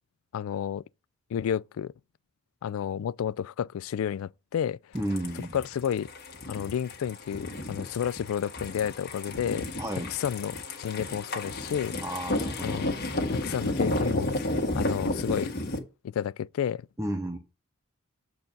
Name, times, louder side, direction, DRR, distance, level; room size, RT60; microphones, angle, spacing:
voice 1, 0.3-0.8 1.3-1.9 2.6-4.8 5.4-6.1 6.5-9.7 10.1-12.0 12.6-12.9 13.3-14.4 14.8-15.5 16.0-16.9, left 8 dB, 80° left, 0.3 m, -31 dB
sound 1, 4.9-15.8, left 1 dB, 50° left, 1.7 m, -32 dB
voice 2, 4.9-5.5 9.8-10.1 12.0-12.8 17.0-17.4, right 1 dB, 15° right, 0.9 m, -32 dB
7.6 x 4.6 x 5.3 m
head